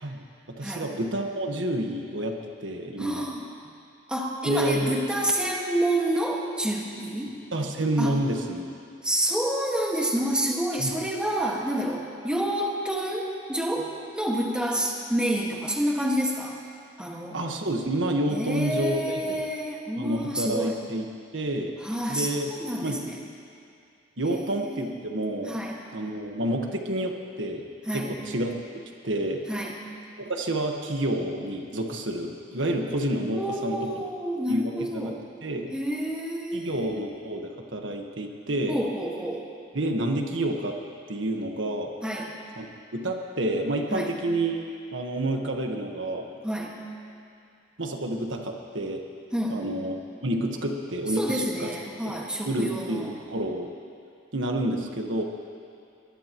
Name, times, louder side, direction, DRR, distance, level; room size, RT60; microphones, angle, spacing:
voice 1, 0.0-3.3 4.4-4.9 7.5-8.7 10.8-10.9 17.3-19.4 20.0-21.8 22.1-22.5 22.8-23.0 24.2-25.6 25.9-27.7 27.9-28.6 29.0-29.4 30.2-33.8 34.5-35.1 35.4-35.7 36.5-38.8 39.7-40.8 41.1-41.9 42.6-42.7 42.9-44.6 44.9-46.3 47.8-49.0 49.5-50.0 50.2-51.7 52.1-52.2 52.5-53.7 54.3-55.2, right 1 dB, 85° right, 2 dB, 1.5 m, -29 dB
voice 2, 3.0-3.5 4.1-7.4 8.0-8.2 9.0-16.6 17.0-17.4 18.3-20.8 21.8-23.2 24.2-24.8 25.5-25.8 27.9-28.2 29.5-29.8 33.3-35.2 35.7-37.0 38.7-39.5 42.0-42.3 43.9-44.2 46.4-46.8 49.3-49.8 51.2-53.1, right 1 dB, 5° right, -2 dB, 1.8 m, -29 dB
23.5 x 20.0 x 3.1 m, 2.5 s
head